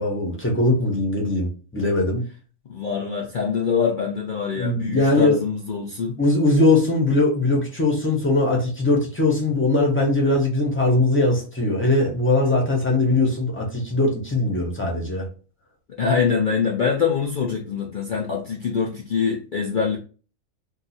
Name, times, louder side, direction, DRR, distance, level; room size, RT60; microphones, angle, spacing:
voice 1, 0.0-2.2 4.5-5.4 6.2-15.3, left 2 dB, 10° left, -1 dB, 0.6 m, -20 dB
voice 2, 2.7-6.2 16.0-20.0, left 6 dB, 65° left, -2 dB, 0.5 m, -24 dB
2.7 x 2.3 x 4.1 m, 0.36 s
omnidirectional pair, 1.5 m